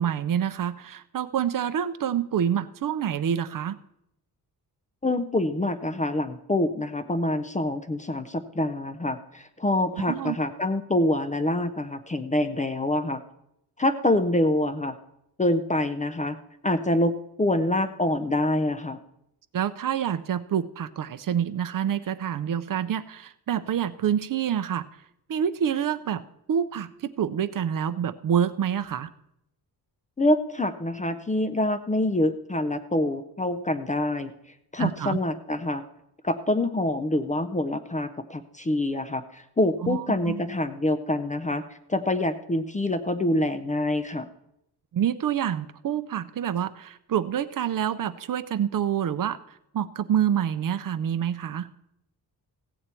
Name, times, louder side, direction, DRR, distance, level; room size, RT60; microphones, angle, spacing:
voice 1, 0.0-3.8 10.0-10.4 19.5-24.9 25.3-29.1 34.8-35.2 39.8-40.4 44.9-49.4 49.7-51.7, right 9 dB, 55° right, 14 dB, 0.5 m, -27 dB
voice 2, 5.0-13.2 13.8-14.9 15.4-16.4 16.6-19.0 30.2-34.3 34.7-35.8 36.2-41.6 41.9-44.3, left 1 dB, 20° left, 9 dB, 0.4 m, -26 dB
15.5 x 8.2 x 4.4 m, 0.80 s
wide cardioid pair, 170°, 40 cm